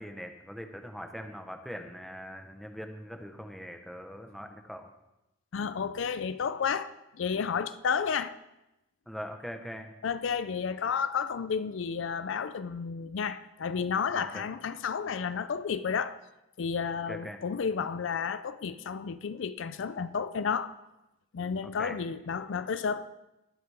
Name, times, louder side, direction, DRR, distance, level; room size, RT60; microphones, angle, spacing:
voice 1, 0.0-4.9 9.1-9.9 14.1-14.5 17.1-17.4 21.6-22.0, equal, ahead, 1.0 m, -42 dB
voice 2, 5.5-8.4 10.0-16.2 16.6-20.7 21.3-23.1, left 6 dB, 70° left, 0.4 m, -32 dB
21.0 x 7.8 x 3.5 m
head